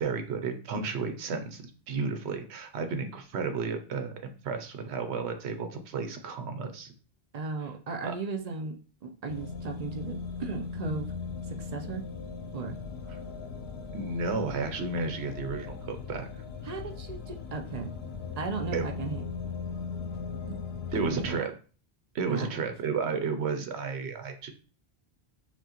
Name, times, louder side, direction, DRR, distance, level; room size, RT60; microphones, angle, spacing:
voice 1, 0.0-6.9 7.6-7.7 8.0-8.1 13.9-16.3 18.7-18.9 20.9-21.5 22.1-24.5, right 4 dB, 85° right, 7 dB, 0.9 m, -32 dB
voice 2, 7.3-8.8 9.0-11.1 11.6-12.0 12.5-12.8 16.7-17.9 18.4-19.2 20.5-20.6 20.9-21.5 22.3-22.5, right 4 dB, 50° right, 4 dB, 0.5 m, -36 dB
sound 1, 9.3-21.4, left 5 dB, 85° left, 0.8 m, -38 dB
5.8 x 2.2 x 2.9 m, 0.38 s
omnidirectional pair, 1.1 m